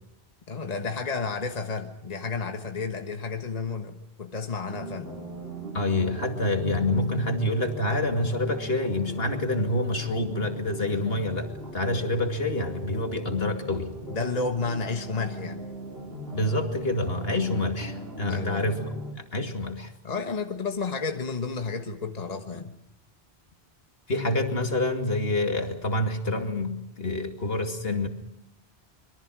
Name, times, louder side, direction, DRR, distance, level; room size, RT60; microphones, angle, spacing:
voice 1, 0.5-5.1 14.1-15.6 17.6-17.7 18.3-18.7 20.0-22.7, left 4 dB, 40° left, 5 dB, 1.5 m, -31 dB
sound 1, 4.7-19.1, equal, 65° right, 3.3 m, -39 dB
voice 2, 5.7-13.9 16.3-18.9 19.3-19.9 24.1-28.1, left 1 dB, 65° left, 5 dB, 2.6 m, -27 dB
26.0 x 22.5 x 6.2 m, 0.83 s
omnidirectional pair, 1.1 m